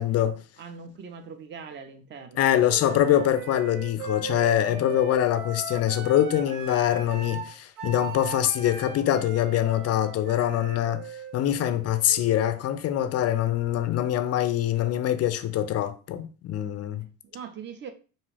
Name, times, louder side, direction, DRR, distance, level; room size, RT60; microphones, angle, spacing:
voice 1, 0.0-0.4 2.4-11.0 11.3-17.1, left 11 dB, 40° left, 0.4 m, -24 dB
voice 2, 0.6-3.0 4.6-5.0 17.0-17.9, right 6 dB, 25° right, 0.5 m, -42 dB
Wind instrument woodwind instrument, 2.7-12.5, right 5 dB, 85° right, 0.5 m, -39 dB
2.6 x 2.3 x 3.2 m
hypercardioid pair, 65°, 43 cm